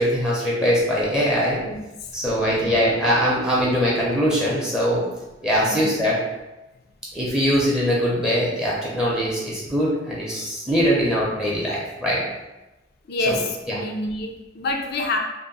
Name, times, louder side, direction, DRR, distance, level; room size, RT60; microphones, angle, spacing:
voice 1, 0.0-1.6 2.1-5.0 5.4-6.2 7.1-12.2 13.3-13.4 13.7-13.8, equal, 5° right, -6 dB, 0.7 m, -22 dB
voice 2, 1.6-2.1 2.4-2.8 5.6-6.0 13.1-15.2, left 2 dB, 55° left, 3 dB, 0.5 m, -28 dB
3.3 x 2.1 x 4.0 m, 1.0 s
head